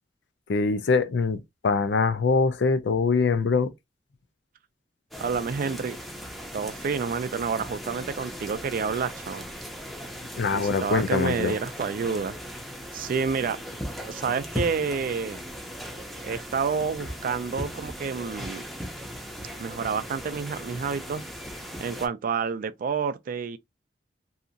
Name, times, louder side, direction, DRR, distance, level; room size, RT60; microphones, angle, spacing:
voice 1, 0.5-3.7 10.4-11.5, left 4 dB, 70° left, 0.4 m, -23 dB
sound 1, 5.1-22.1, equal, ahead, 0.5 m, -38 dB
voice 2, 5.2-6.0 6.5-9.4 10.5-12.4 12.9-13.6 14.0-15.4 16.2-18.6 19.6-21.2 21.8-23.6, right 5 dB, 50° right, 0.3 m, -29 dB
2.7 x 2.5 x 2.5 m
head